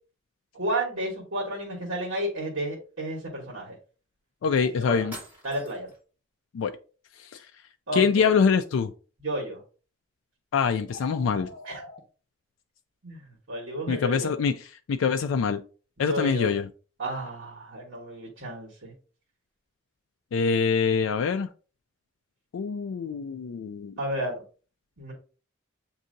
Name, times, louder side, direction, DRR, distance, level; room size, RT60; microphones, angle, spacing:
voice 1, 0.5-3.8 4.6-5.1 5.4-5.9 7.9-8.3 9.2-9.6 11.6-11.8 13.0-14.3 16.0-16.5 17.0-18.9 24.0-24.4 25.0-25.1, right 1 dB, 80° right, 1.3 m, -32 dB
voice 2, 4.4-5.1 6.5-6.7 7.2-7.5 7.9-8.9 10.5-11.5 13.9-15.6 16.0-16.7 20.3-21.5 22.5-23.9, left 6 dB, 80° left, 0.3 m, -24 dB
sound 1, 5.1-6.0, right 1 dB, 10° right, 2.5 m, -44 dB
sound 2, 10.8-12.0, left 3 dB, 55° left, 1.0 m, -43 dB
7.4 x 2.7 x 2.6 m
head